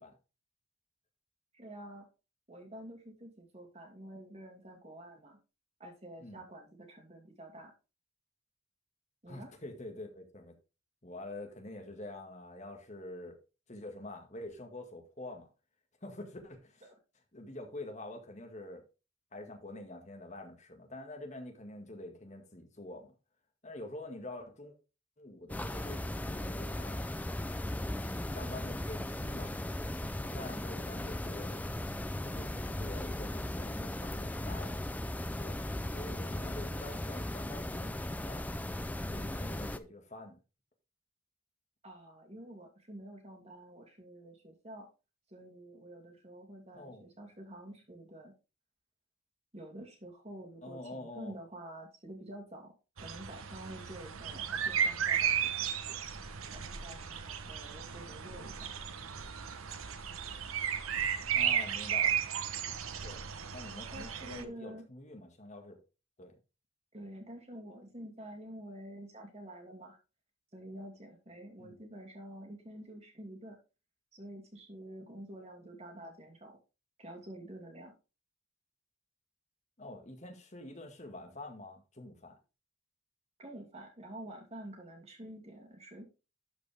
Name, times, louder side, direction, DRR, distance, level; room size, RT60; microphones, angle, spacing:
voice 1, 1.5-2.1 2.5-5.4 5.8-7.7 9.2-9.5 41.8-44.9 45.3-48.3 49.5-56.0 56.5-58.7 63.9-64.8 66.9-70.0 70.5-73.6 74.1-76.5 77.0-77.9 83.4-86.1, right 1 dB, 30° right, 2.6 m, -48 dB
voice 2, 9.3-10.5 11.0-13.4 13.7-15.5 16.0-16.8 17.3-18.8 19.3-23.1 23.6-24.7 25.2-27.1 28.0-29.5 30.1-31.6 32.2-34.8 35.3-38.5 39.1-40.4 46.7-47.0 50.6-51.4 61.3-62.1 63.0-63.2 63.5-65.8 66.2-66.3 71.6-71.8 79.8-82.4, left 2 dB, 35° left, 1.8 m, -46 dB
sound 1, 25.5-39.8, left 1 dB, 5° left, 0.4 m, -37 dB
sound 2, 53.0-64.4, right 8 dB, 90° right, 0.9 m, -34 dB
12.0 x 5.2 x 3.5 m
head